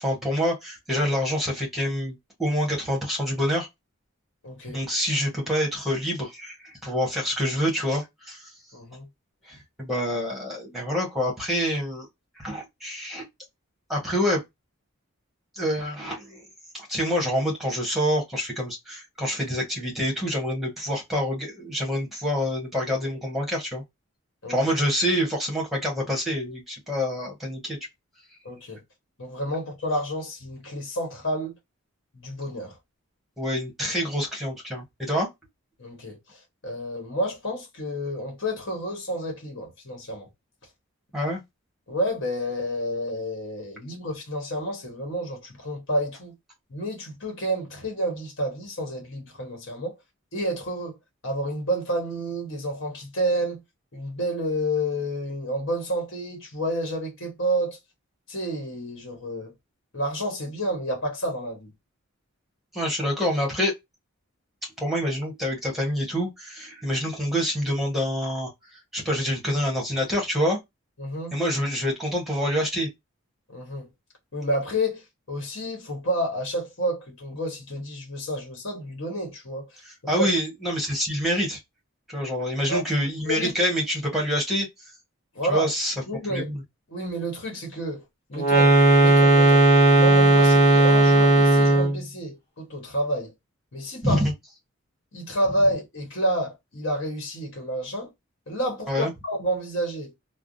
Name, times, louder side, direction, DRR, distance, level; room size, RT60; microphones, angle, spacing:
voice 1, 0.0-3.7 4.7-8.5 9.5-12.1 12.4-13.3 13.9-14.4 15.6-16.4 16.7-23.8 24.5-27.8 33.4-35.3 41.1-41.4 62.7-63.7 64.8-70.6 71.3-72.9 80.1-81.6 82.1-84.7 85.5-85.9 86.3-86.6 94.0-94.3 98.9-99.1, equal, ahead, 1.1 m, -26 dB
voice 2, 4.4-4.8 8.7-9.1 24.4-24.6 28.4-28.8 29.2-31.5 32.1-32.7 35.8-36.2 36.6-40.3 41.9-46.3 46.7-49.9 50.3-50.9 51.2-53.6 53.9-57.8 58.3-59.5 59.9-61.7 71.0-71.4 73.5-73.9 74.3-75.0 75.3-79.7 80.2-80.3 82.7-82.8 83.2-83.5 85.3-85.7 86.1-86.5 86.9-88.0 88.3-89.7 89.9-93.3 93.7-94.2 95.1-98.1 98.5-100.1, equal, 60° left, 1.3 m, -29 dB
sound 1, 88.4-92.0, right 1 dB, 30° left, 1.0 m, -16 dB
3.4 x 2.1 x 2.5 m
head